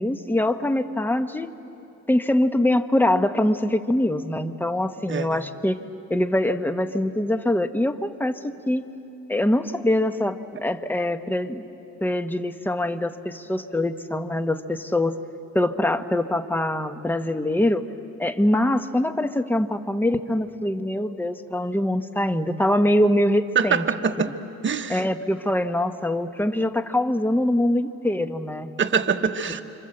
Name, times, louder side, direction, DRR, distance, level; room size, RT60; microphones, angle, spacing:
voice 1, 0.0-1.5 2.1-5.8 6.1-8.8 9.3-11.7 12.0-15.2 15.5-17.8 18.2-23.8 24.9-28.7, left 1 dB, 5° left, 9 dB, 1.1 m, -23 dB
voice 2, 5.1-5.4 23.5-24.3 24.6-25.0 28.8-29.6, right 6 dB, 40° right, 5 dB, 1.4 m, -24 dB
28.5 x 26.0 x 7.8 m, 2.8 s
cardioid pair, 90°, 30 cm